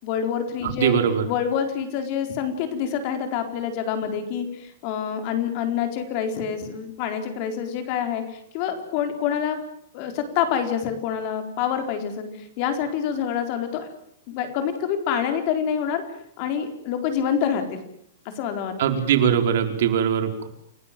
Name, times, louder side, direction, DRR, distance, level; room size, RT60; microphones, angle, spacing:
voice 1, 0.0-1.0 1.3-9.6 9.9-13.9 14.3-16.0 16.4-17.8 18.4-18.7, left 8 dB, 35° left, 7 dB, 4.2 m, -27 dB
voice 2, 0.6-1.2 18.8-20.5, right 8 dB, 55° right, 6 dB, 4.7 m, -21 dB
29.0 x 19.0 x 7.6 m, 0.69 s
supercardioid pair, 175°, 0 cm